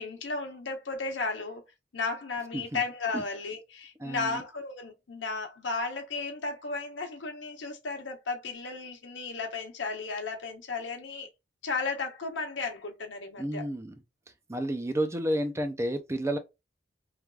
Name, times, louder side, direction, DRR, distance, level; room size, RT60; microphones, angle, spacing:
voice 1, 0.0-1.6 1.9-11.3 11.6-13.6, left 4 dB, 75° left, 0.8 m, -34 dB
voice 2, 4.0-4.4 13.4-13.9 14.5-16.4, right 1 dB, 15° right, 0.4 m, -31 dB
3.2 x 2.3 x 2.3 m
head